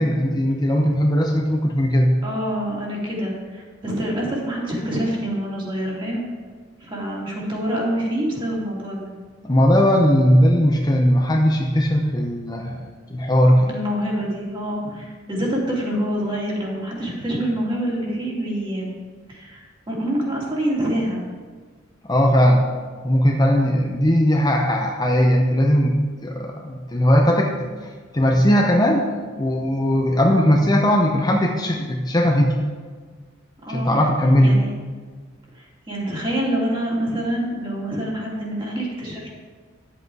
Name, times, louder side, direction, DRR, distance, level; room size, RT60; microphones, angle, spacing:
voice 1, 0.0-2.2 9.4-13.8 14.8-15.0 22.0-22.7 23.0-26.0 26.2-27.7 28.1-29.1 29.4-32.5 33.7-34.6, equal, 20° left, 1 dB, 0.7 m, -18 dB
voice 2, 2.2-6.2 6.8-9.1 13.6-18.9 19.3-21.2 33.6-33.9 34.4-34.7 35.6-39.4, equal, 25° right, -4 dB, 2.6 m, -26 dB
10.5 x 7.8 x 4.7 m, 1.5 s
head